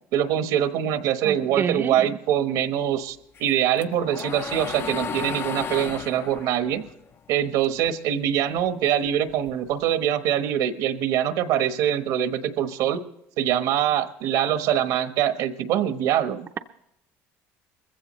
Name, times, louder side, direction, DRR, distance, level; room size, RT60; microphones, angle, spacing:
voice 1, 0.1-6.8 7.3-13.0 13.4-16.5, right 10 dB, 75° right, 10 dB, 1.1 m, -24 dB
voice 2, 1.2-1.9, right 7 dB, 35° right, 6 dB, 0.6 m, -27 dB
sound 1, 3.4-7.9 8.3-9.8, left 6 dB, 40° left, 0.6 m, -34 dB
20.5 x 15.5 x 3.1 m, 0.81 s
supercardioid pair, 100°, 6 cm